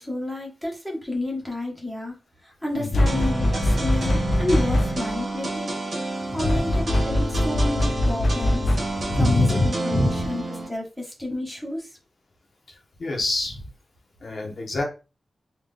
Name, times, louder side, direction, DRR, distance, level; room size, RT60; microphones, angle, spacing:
voice 1, 0.0-2.2 2.4-5.7 6.0-11.9, left 1 dB, ahead, -2 dB, 1.2 m, -30 dB
voice 2, 2.8-3.1 6.4-6.7 8.9-10.3 13.0-13.6 14.2-14.8, left 1 dB, 50° left, 0 dB, 0.9 m, -25 dB
sound 1, 2.9-5.2 6.4-9.1, left 1 dB, 75° left, 0.5 m, -23 dB
sound 2, 3.1-10.7, right 2 dB, 60° right, 1.6 m, -29 dB
3.7 x 2.5 x 3.4 m, 0.30 s
wide cardioid pair, 150°, 0 cm